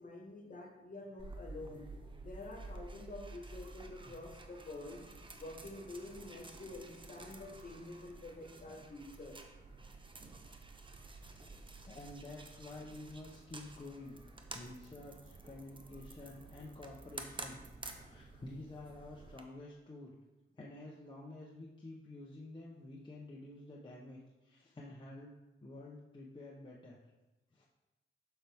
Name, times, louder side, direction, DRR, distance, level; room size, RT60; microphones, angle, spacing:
voice 1, 0.0-5.0 5.4-9.4 11.2-11.3, left 2 dB, 40° left, 1 dB, 1.7 m, -48 dB
sound 1, 1.2-19.4, right 2 dB, 25° right, 0.8 m, -51 dB
voice 2, 11.8-14.2 14.5-17.6 17.9-20.1 20.5-25.4 25.6-27.0 27.5-27.7, left 2 dB, 25° left, -4 dB, 1.0 m, -50 dB
7.3 x 5.8 x 3.6 m, 1.1 s
cardioid pair, 80°, 21 cm